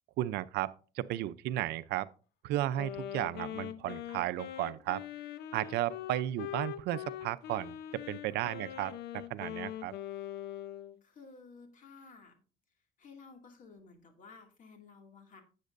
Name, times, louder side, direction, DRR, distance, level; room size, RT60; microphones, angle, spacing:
voice 1, 0.2-2.1 2.4-5.0 5.5-7.8 8.1-8.9 9.3-9.9, right 14 dB, 80° right, 0.6 m, -34 dB
Wind instrument woodwind instrument, 2.7-11.0, left 12 dB, 75° left, 0.7 m, -42 dB
voice 2, 11.0-12.4 13.0-15.4, left 4 dB, 50° left, 2.4 m, -54 dB
12.0 x 8.3 x 2.6 m
cardioid pair, 110°, 17 cm